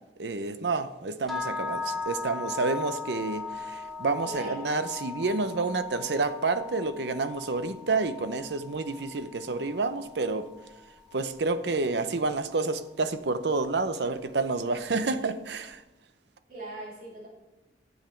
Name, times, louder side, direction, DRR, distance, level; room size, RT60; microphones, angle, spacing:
voice 1, 0.2-10.5 11.1-15.8, right 3 dB, 75° right, 11 dB, 0.7 m, -29 dB
sound 1, 1.3-11.4, left 5 dB, ahead, 1.4 m, -38 dB
voice 2, 4.2-4.8 16.5-17.3, right 2 dB, 55° right, -6 dB, 4.1 m, -40 dB
12.0 x 7.3 x 5.7 m, 1.1 s
head